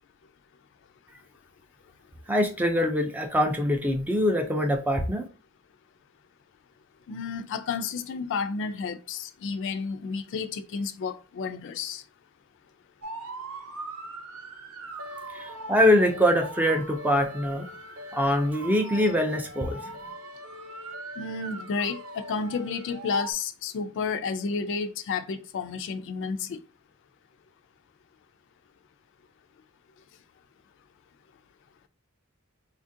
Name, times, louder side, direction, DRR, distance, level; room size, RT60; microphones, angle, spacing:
voice 1, 2.3-5.3 15.3-17.7 18.1-19.9, equal, 10° right, 0.4 m, -24 dB
voice 2, 7.1-12.0 21.2-26.6, left 5 dB, 60° left, 0.4 m, -31 dB
sound 1, 13.0-23.3, right 1 dB, 70° right, 0.5 m, -40 dB
4.2 x 2.4 x 2.6 m
head